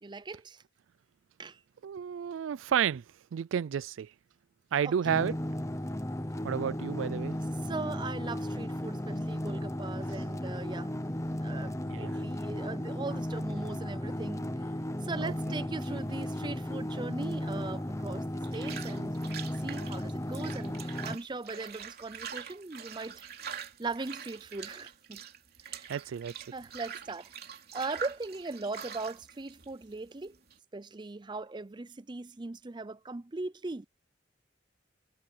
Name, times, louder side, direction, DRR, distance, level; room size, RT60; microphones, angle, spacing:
voice 1, 0.0-0.6 1.4-1.6 4.8-4.9 7.6-10.9 11.4-14.5 15.0-19.1 19.6-23.3 23.8-25.2 25.6-25.9 26.5-27.3 27.7-30.4 30.7-33.9, right 3 dB, 25° right, 0.5 m, -39 dB
voice 2, 1.8-3.0 3.3-4.1 4.7-5.4 6.4-7.4 11.9-12.1 15.2-15.3 25.9-26.3, right 8 dB, 90° right, 0.3 m, -31 dB
sound 1, 5.0-21.2, left 1 dB, 15° left, 0.9 m, -35 dB
sound 2, 15.8-30.6, right 7 dB, 55° right, 3.2 m, -45 dB
head